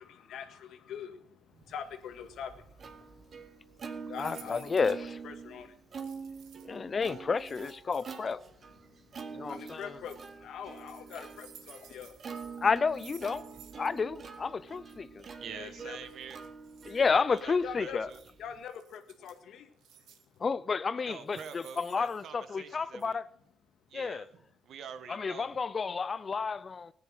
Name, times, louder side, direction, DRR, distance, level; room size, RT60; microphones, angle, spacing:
voice 1, 0.0-2.7 3.1-3.2 4.1-4.7 5.2-5.8 9.5-12.2 15.5-16.0 17.0-17.1 17.6-18.0 18.4-19.7, left 8 dB, 75° left, 1.8 m, -43 dB
Plucked string instrument, 1.9-18.6, right 5 dB, 45° right, 1.8 m, -46 dB
sound 1, 4.1-4.9 5.9-6.8 7.3-8.3 9.4-10.3 10.7-14.0 14.3-14.4 14.7-15.0 16.0-17.1 18.1-18.3 18.7-19.4 19.8-20.4 21.0-22.7 23.0-23.1, right 9 dB, 85° right, 1.9 m, -56 dB
voice 2, 4.2-5.2 6.7-8.4 9.3-10.0 12.6-13.4 13.7-15.2 16.9-18.1 20.4-23.3 23.9-24.2 25.1-26.9, left 5 dB, 40° left, 0.5 m, -31 dB
voice 3, 15.4-16.4 17.1-18.2 21.1-23.2 23.9-25.5, right 7 dB, 70° right, 1.4 m, -46 dB
15.5 x 10.0 x 6.3 m
cardioid pair, 90°, 0 cm